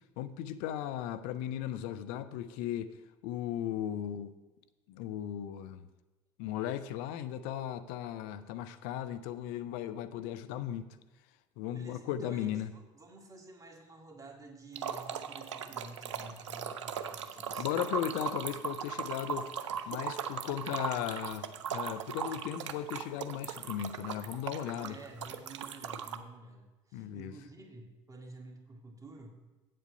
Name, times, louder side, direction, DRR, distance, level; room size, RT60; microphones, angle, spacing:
voice 1, 0.2-2.9 3.2-4.3 4.9-5.9 6.4-10.9 11.6-12.7 17.6-19.5 19.9-25.0 26.9-27.3, left 11 dB, 70° left, 13 dB, 0.6 m, -36 dB
voice 2, 11.7-17.7 24.8-29.4, right 2 dB, 25° right, 1 dB, 2.0 m, -51 dB
sound 1, 14.8-26.2, right 7 dB, 85° right, 0.5 m, -38 dB
8.1 x 7.6 x 5.3 m, 1.2 s
hypercardioid pair, 70°, 15 cm